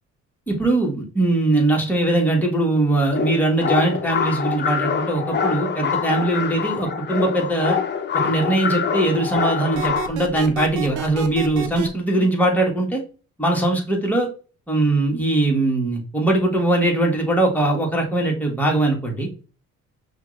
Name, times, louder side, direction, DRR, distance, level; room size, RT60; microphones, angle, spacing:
voice 1, 0.5-7.8 8.1-13.0 13.4-14.3 14.7-19.3, right 2 dB, 5° left, -1 dB, 1.6 m, -21 dB
sound 1, 3.1-10.1, left 7 dB, 35° left, 0.7 m, -25 dB
sound 2, 9.7-11.9, right 9 dB, 75° right, 0.6 m, -29 dB
5.6 x 2.5 x 3.2 m, 0.36 s
cardioid pair, 90°, 30 cm